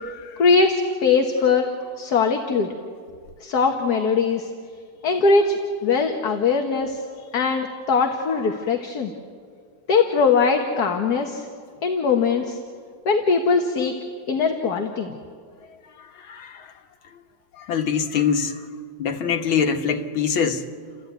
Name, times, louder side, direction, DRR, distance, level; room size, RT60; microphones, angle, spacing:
voice 1, 0.4-1.7 2.0-2.7 3.4-4.5 5.0-7.0 7.3-9.1 9.9-11.5 11.8-12.6 13.0-13.9 14.3-15.2, left 4 dB, 55° left, 4 dB, 1.7 m, -21 dB
voice 2, 16.0-16.7 17.6-18.6 19.0-20.7, left 6 dB, 80° left, 5 dB, 2.2 m, -24 dB
30.0 x 14.0 x 9.3 m, 2.1 s
omnidirectional pair, 2.2 m